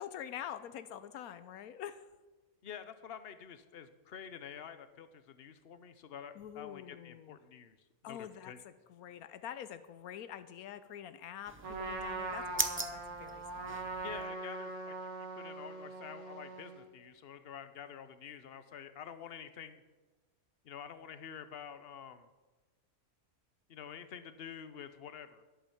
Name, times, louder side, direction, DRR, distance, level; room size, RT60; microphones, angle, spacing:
voice 1, 0.0-2.1 6.3-7.4 8.0-13.8 14.2-14.4, left 10 dB, 85° left, 12 dB, 1.1 m, -46 dB
voice 2, 2.6-7.8 8.1-8.6 14.0-15.1 15.4-19.8 20.6-22.3 23.7-25.4, left 8 dB, 50° left, 11 dB, 0.9 m, -48 dB
sound 1, 11.5-14.3, right 2 dB, 15° right, 0.4 m, -40 dB
Trumpet, 11.6-16.9, right 3 dB, 80° right, 2.1 m, -41 dB
11.5 x 8.7 x 7.2 m, 1.2 s
omnidirectional pair, 1.5 m